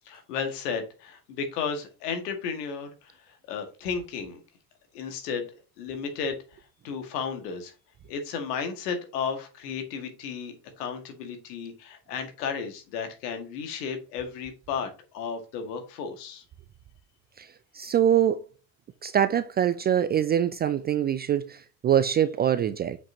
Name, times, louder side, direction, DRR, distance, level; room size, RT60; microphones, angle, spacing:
voice 1, 0.1-3.1 3.5-4.4 4.9-5.5 5.8-6.4 6.8-7.7 8.1-16.4, left 6 dB, 65° left, 2.0 m, -33 dB
voice 2, 17.7-18.4 19.0-23.0, right 9 dB, 20° right, 0.3 m, -24 dB
7.3 x 6.0 x 2.8 m
figure-of-eight pair, 65°, 49 cm